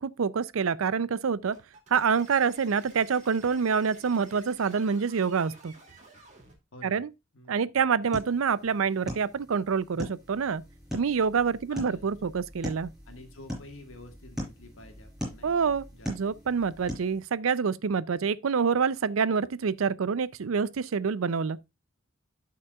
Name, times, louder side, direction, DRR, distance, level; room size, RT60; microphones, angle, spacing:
voice 1, 0.0-1.6 1.9-5.7 6.8-7.1 7.5-10.6 10.9-12.9 15.4-21.6, right 6 dB, 75° right, 0.5 m, -27 dB
sound 1, 1.5-6.6, right 3 dB, 35° right, 2.4 m, -53 dB
voice 2, 6.7-7.1 7.3-7.6 11.7-12.1 13.1-16.1, left 1 dB, 65° left, 1.7 m, -49 dB
sound 2, 8.0-17.2, equal, 5° right, 5.2 m, -41 dB
12.0 x 5.8 x 2.3 m
head